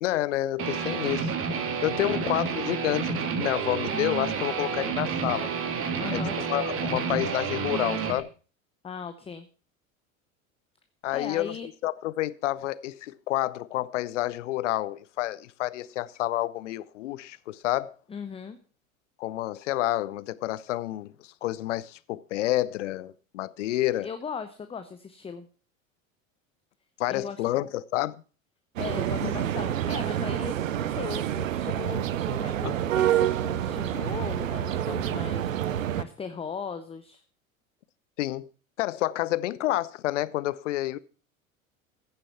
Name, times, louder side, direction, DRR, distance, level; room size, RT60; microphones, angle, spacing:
voice 1, 0.0-1.3 1.8-5.5 6.1-8.3 11.0-11.6 11.8-17.9 19.2-24.1 27.0-28.2 29.2-29.4 38.2-38.5 38.8-41.0, left 15 dB, 60° left, 0.8 m, -29 dB
Guitar, 0.6-8.2, right 6 dB, 30° right, 1.8 m, -30 dB
voice 2, 6.0-6.4 8.8-9.5 11.1-11.7 18.1-18.6 24.0-25.5 27.1-27.4 28.8-37.2, left 6 dB, 15° left, 0.8 m, -38 dB
sound 1, 28.8-36.0, right 11 dB, 70° right, 0.8 m, -28 dB
15.0 x 6.9 x 5.6 m
figure-of-eight pair, 80°, 41 cm